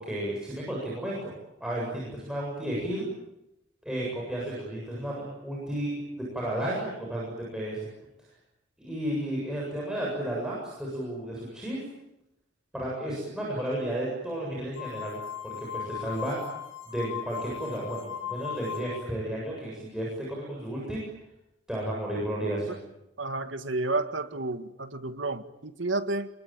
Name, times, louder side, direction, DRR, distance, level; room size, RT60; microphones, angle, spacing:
voice 1, 0.0-3.1 3.8-7.8 8.8-11.8 12.7-15.2 15.4-16.4 16.9-21.0 21.7-22.8, right 1 dB, 5° right, -5 dB, 7.7 m, -33 dB
sound 1, 14.8-19.1, left 9 dB, 85° left, 3.6 m, -38 dB
voice 2, 23.2-26.3, right 2 dB, 80° right, 9 dB, 1.9 m, -31 dB
28.5 x 22.0 x 9.2 m, 0.89 s
head